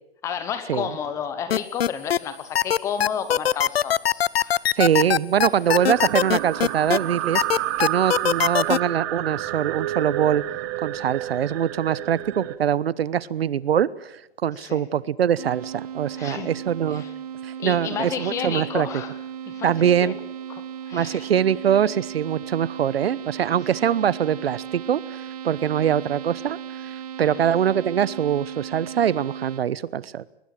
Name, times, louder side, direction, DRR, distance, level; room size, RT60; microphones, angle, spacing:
voice 1, 0.2-4.6 14.6-14.8 16.1-16.5 16.9-17.1 17.6-19.1 19.5-19.7 20.0-20.2 20.5-21.3 27.2-27.4, left 7 dB, 10° left, 12 dB, 0.9 m, -32 dB
sound 1, 1.5-2.2 2.5-7.0 7.3-8.8, left 10 dB, 65° left, 0.8 m, -20 dB
voice 2, 4.7-7.4 7.8-10.4 10.8-17.0 17.4-18.9 19.6-20.1 20.9-30.2, right 9 dB, 65° right, 20 dB, 1.1 m, -23 dB
sound 2, 5.6-12.6, right 15 dB, 20° right, 0.8 m, -30 dB
sound 3, 15.4-29.6, right 9 dB, 35° right, 1.1 m, -36 dB
22.5 x 21.5 x 7.6 m, 0.83 s
hypercardioid pair, 165°, 32 cm